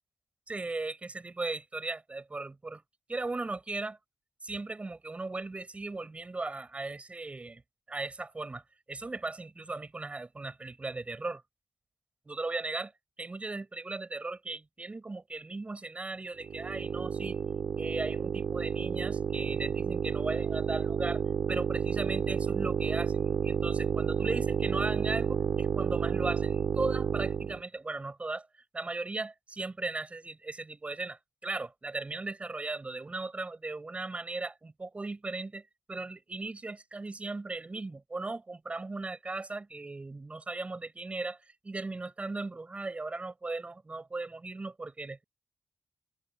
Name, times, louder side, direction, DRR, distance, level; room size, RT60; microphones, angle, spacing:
voice 1, 0.5-2.8 3.1-4.0 4.4-7.6 7.9-8.6 8.9-11.4 12.3-12.9 13.2-17.4 17.7-21.2 21.5-28.5 28.7-41.4 41.6-45.2, right 3 dB, 25° right, 7.0 m, -37 dB
sound 1, 16.4-27.6, right 7 dB, 65° right, 2.1 m, -30 dB
open air
wide cardioid pair, 115°, 5 cm